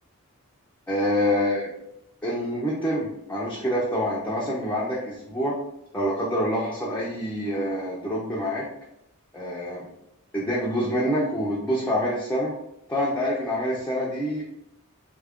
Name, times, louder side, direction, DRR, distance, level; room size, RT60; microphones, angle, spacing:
voice 1, 0.9-1.7 2.2-5.6 5.9-8.7 9.3-9.8 10.3-12.5 12.9-14.4, equal, 10° left, -6 dB, 0.5 m, -26 dB
3.4 x 2.4 x 3.5 m, 0.81 s
head